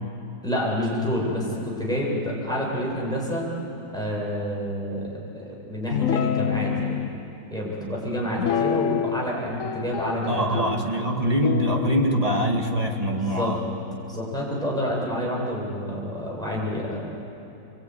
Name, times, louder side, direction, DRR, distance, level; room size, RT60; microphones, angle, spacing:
voice 1, 0.4-3.5 3.9-7.0 7.5-10.8 13.1-13.5 14.1-17.0, equal, ahead, -5 dB, 7.8 m, -28 dB
Guitar, 5.9-7.1 8.4-9.3 9.6-10.8 11.4-14.8, left 8 dB, 60° left, 0.9 m, -28 dB
voice 2, 10.3-13.6, right 1 dB, 20° right, 1 dB, 2.1 m, -24 dB
25.0 x 22.5 x 9.7 m, 2.9 s
omnidirectional pair, 2.0 m